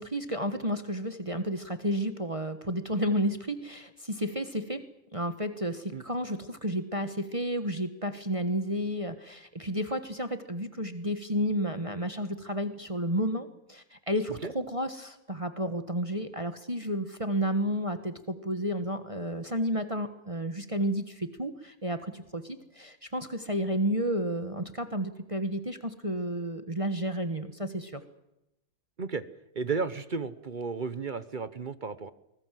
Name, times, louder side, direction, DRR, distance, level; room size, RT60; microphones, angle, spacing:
voice 1, 0.0-4.8 5.1-28.0, equal, 20° right, 8 dB, 1.2 m, -31 dB
voice 2, 29.5-32.1, right 4 dB, 40° right, 13 dB, 0.7 m, -33 dB
24.0 x 20.5 x 7.6 m, 0.88 s
omnidirectional pair, 2.0 m